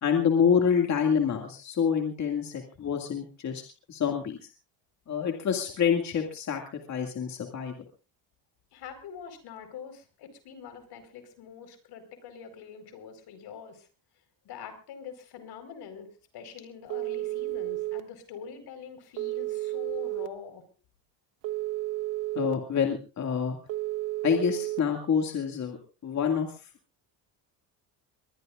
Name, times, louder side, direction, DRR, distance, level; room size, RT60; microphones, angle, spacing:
voice 1, 0.0-3.6 3.9-4.5 5.1-7.8 22.4-23.6 24.2-25.8 26.0-26.6, left 7 dB, 40° left, 2 dB, 2.4 m, -27 dB
voice 2, 8.7-13.9 14.4-16.1 16.3-20.6, left 7 dB, 70° left, 8 dB, 4.7 m, -44 dB
Telephone, 16.9-18.0 19.2-20.3 21.4-22.5 23.7-24.8, right 18 dB, 80° right, 1.3 m, -32 dB
22.5 x 20.0 x 2.5 m, 0.34 s
cardioid pair, 110°, 41 cm